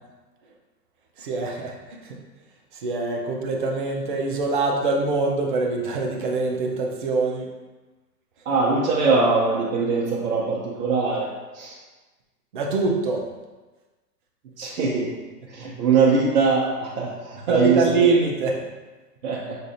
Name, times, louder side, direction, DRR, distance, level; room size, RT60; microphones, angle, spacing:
voice 1, 1.2-1.7 2.0-2.1 2.7-7.5 12.5-13.3 17.5-18.6, right 3 dB, 35° right, 0 dB, 0.5 m, -23 dB
voice 2, 8.4-11.8 14.6-15.1 15.5-17.8 19.2-19.6, right 4 dB, 55° right, -4 dB, 0.8 m, -22 dB
6.3 x 2.4 x 2.7 m, 1.2 s
hypercardioid pair, 135°, 50 cm